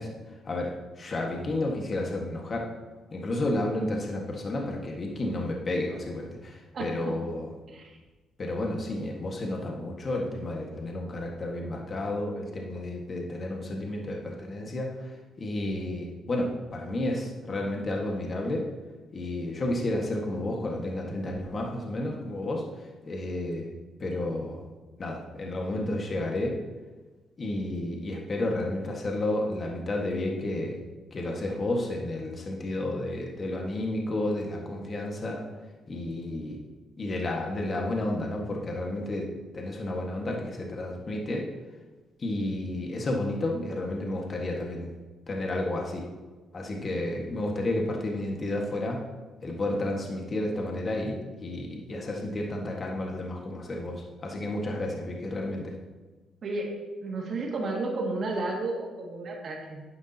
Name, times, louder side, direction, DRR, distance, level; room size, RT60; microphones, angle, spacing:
voice 1, 0.0-2.7 3.1-7.5 8.4-18.6 19.1-23.7 24.0-24.6 25.0-26.6 27.4-30.8 31.1-35.4 35.9-36.6 37.0-41.5 42.2-44.9 45.3-46.1 46.5-49.0 49.4-55.8, left 1 dB, 40° left, 0 dB, 1.6 m, -31 dB
voice 2, 6.7-7.1 7.7-8.0 56.4-59.8, right 2 dB, 55° right, -1 dB, 2.1 m, -32 dB
10.5 x 10.0 x 2.9 m, 1.3 s
cardioid pair, 90°, 0 cm